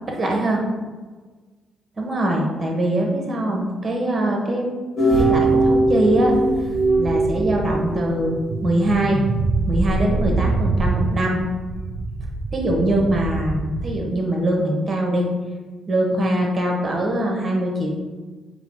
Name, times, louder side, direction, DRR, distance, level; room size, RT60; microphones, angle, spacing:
voice 1, 0.2-0.6 2.0-4.7 5.2-6.3 7.0-8.4 8.6-9.2 9.7-11.4 12.5-15.3 15.9-17.9, right 1 dB, 35° right, 0 dB, 1.0 m, -22 dB
sound 1, 5.0-8.2, right 2 dB, 45° left, 0.8 m, -19 dB
sound 2, 5.1-14.0, right 3 dB, 65° right, 0.4 m, -26 dB
4.5 x 2.1 x 3.7 m, 1.3 s
cardioid pair, 90°, 0 cm